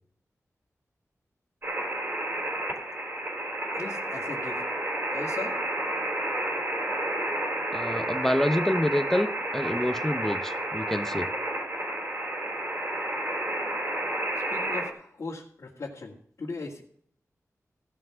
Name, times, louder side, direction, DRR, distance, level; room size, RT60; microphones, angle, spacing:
sound 1, 1.6-14.9, right 1 dB, 45° right, 3.7 m, -31 dB
voice 1, 3.7-4.6 5.1-5.6 14.5-16.8, left 3 dB, 60° left, -4 dB, 2.3 m, -38 dB
voice 2, 7.7-9.3 9.5-11.3, left 1 dB, 5° left, 10 dB, 0.8 m, -27 dB
16.5 x 5.9 x 6.1 m, 0.62 s
wide cardioid pair, 115°, 6 cm